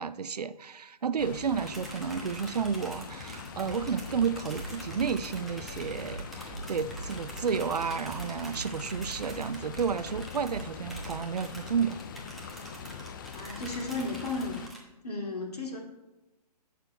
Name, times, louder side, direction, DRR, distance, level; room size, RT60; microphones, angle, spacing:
voice 1, 0.0-12.0, right 6 dB, 75° right, 14 dB, 0.5 m, -31 dB
sound 1, 1.2-14.7, left 6 dB, 30° left, 0.4 m, -43 dB
sound 2, 1.6-14.8, right 1 dB, ahead, 1.0 m, -47 dB
sound 3, 3.5-11.3, right 3 dB, 35° right, 1.6 m, -44 dB
voice 2, 13.4-14.6 15.0-15.8, left 3 dB, 70° left, 0 dB, 2.2 m, -34 dB
16.0 x 6.6 x 2.2 m, 1.0 s
figure-of-eight pair, 135°, 21 cm